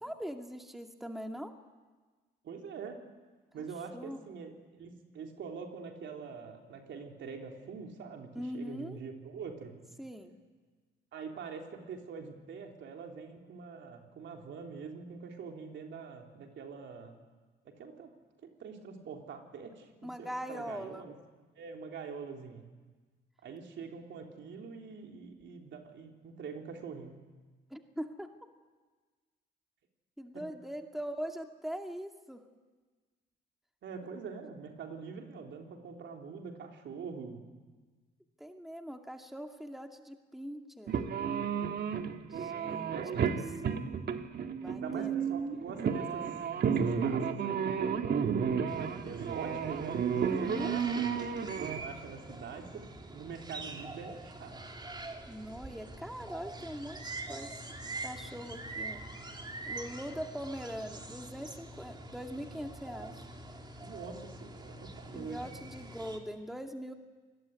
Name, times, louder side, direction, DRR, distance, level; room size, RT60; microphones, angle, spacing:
voice 1, 0.0-1.5 3.6-3.7 3.9-4.3 8.3-9.0 10.0-10.3 20.0-21.1 27.7-28.3 30.2-32.4 38.4-40.9 42.3-42.9 43.7-43.9 44.6-45.4 50.3-50.8 55.3-57.5 58.0-59.0 59.7-63.1 65.1-66.9, equal, ahead, 4 dB, 2.3 m, -41 dB
voice 2, 2.4-3.0 3.5-9.7 11.1-17.2 17.7-18.1 18.4-19.9 20.2-21.1 21.6-22.6 23.4-27.1 30.3-30.4 33.8-37.4 42.9-43.3 44.8-46.3 46.6-48.0 48.3-50.0 50.4-51.1 51.6-52.9 53.1-54.6 63.8-65.5, right 5 dB, 70° right, 2 dB, 3.7 m, -44 dB
sound 1, 40.9-51.8, right 7 dB, 55° right, 1.8 m, -32 dB
sound 2, 48.7-66.2, right 2 dB, 20° right, 3.2 m, -45 dB
26.5 x 20.0 x 9.6 m, 1.4 s
cardioid pair, 90°, 20 cm